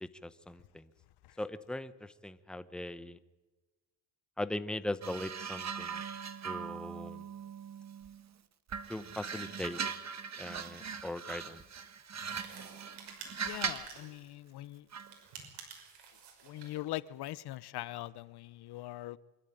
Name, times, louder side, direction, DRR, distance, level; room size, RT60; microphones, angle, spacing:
voice 1, 0.0-0.8 1.4-3.2 4.4-6.0 6.4-7.2 8.9-9.8 10.4-11.6, left 1 dB, ahead, 13 dB, 1.0 m, -40 dB
sound 1, 5.0-8.2 8.7-14.0 14.9-15.2, right 6 dB, 40° right, 1.6 m, -40 dB
sound 2, 12.1-14.2 15.0-16.8, right 6 dB, 75° right, 6.0 m, -50 dB
voice 2, 13.4-14.9 16.4-19.2, left 15 dB, 70° left, 18 dB, 0.8 m, -41 dB
25.0 x 13.0 x 9.2 m, 1.1 s
cardioid pair, 100°, 40 cm